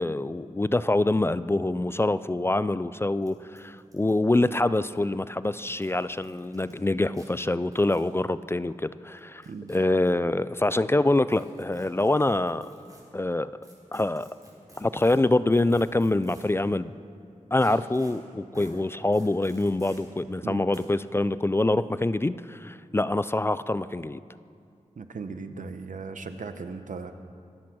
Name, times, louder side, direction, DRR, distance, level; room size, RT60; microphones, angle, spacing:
voice 1, 0.0-9.4 9.7-12.7 13.1-13.5 13.9-14.3 14.8-16.9 17.5-24.2, left 2 dB, 20° left, 15 dB, 0.3 m, -25 dB
sound 1, 2.5-2.6 2.7-2.8 3.2-3.3 3.6-5.0 5.6-6.7 7.1-7.3 7.7-8.1 9.2-10.1 11.3-13.0 13.6-16.6 17.6-18.1 18.5-18.7 19.1-20.0 20.7-20.8, right 1 dB, 25° right, 4.6 m, -51 dB
voice 2, 25.0-27.1, right 4 dB, 80° right, 8 dB, 0.9 m, -37 dB
25.0 x 8.5 x 6.2 m, 2.4 s
wide cardioid pair, 85°, 13 cm